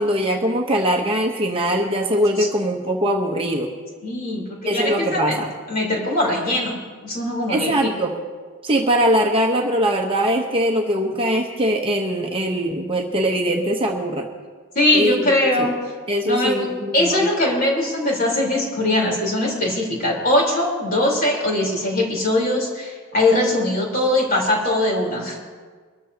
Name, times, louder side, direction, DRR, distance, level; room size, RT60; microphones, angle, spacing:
voice 1, 0.0-3.7 4.6-5.5 7.5-8.1 8.6-14.3 14.9-15.2 15.6-15.7 16.1-17.3, equal, 25° right, 1 dB, 0.9 m, -21 dB
voice 2, 4.0-5.4 5.7-6.8 7.0-7.9 14.8-15.7 16.2-25.4, left 1 dB, 40° left, -2 dB, 3.8 m, -21 dB
23.5 x 13.5 x 2.8 m, 1.5 s
head